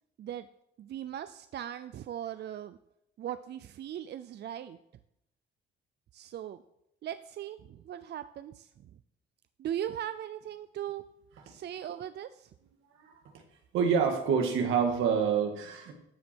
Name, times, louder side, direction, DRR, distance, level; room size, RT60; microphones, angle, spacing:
voice 1, 0.8-2.8 3.2-4.8 6.1-6.6 7.0-9.0 9.6-11.0 11.5-12.5, right 10 dB, 60° right, 12 dB, 0.5 m, -39 dB
voice 2, 13.7-15.9, right 6 dB, 90° right, 4 dB, 1.9 m, -27 dB
13.0 x 7.5 x 4.5 m, 0.81 s
cardioid pair, 90°, 20 cm